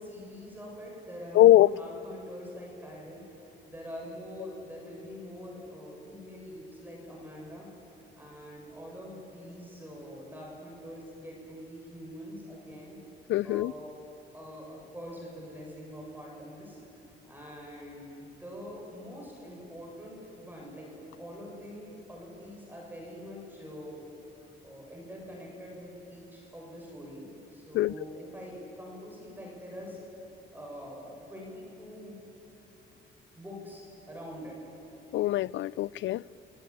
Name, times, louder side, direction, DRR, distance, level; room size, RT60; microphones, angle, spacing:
voice 1, 0.0-7.7 8.2-13.0 13.4-14.0 14.3-16.8 17.2-24.0 24.6-30.0 30.5-32.1 33.3-34.7, equal, 10° right, 7.4 m, -44 dB
voice 2, 1.3-1.7 13.3-13.7 27.7-27.9 35.1-36.2, left 14 dB, 75° left, 0.4 m, -22 dB
27.5 x 17.0 x 9.7 m
cardioid pair, 90°, 20 cm